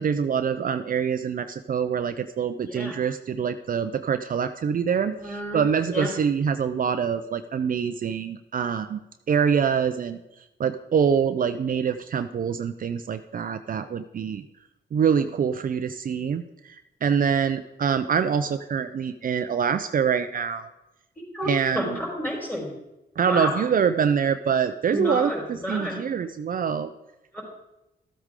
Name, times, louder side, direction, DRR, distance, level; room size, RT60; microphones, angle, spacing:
voice 1, 0.0-9.0 9.3-10.2 10.6-14.4 14.9-20.7 21.5-22.0 23.2-26.9, right 7 dB, 55° right, 8 dB, 0.5 m, -25 dB
voice 2, 2.6-3.0 5.2-6.1 21.3-22.7 23.2-23.6 24.9-26.0 27.3-27.4, equal, 10° left, -1 dB, 4.3 m, -30 dB
13.5 x 8.1 x 3.7 m, 0.94 s
cardioid pair, 80°, 17 cm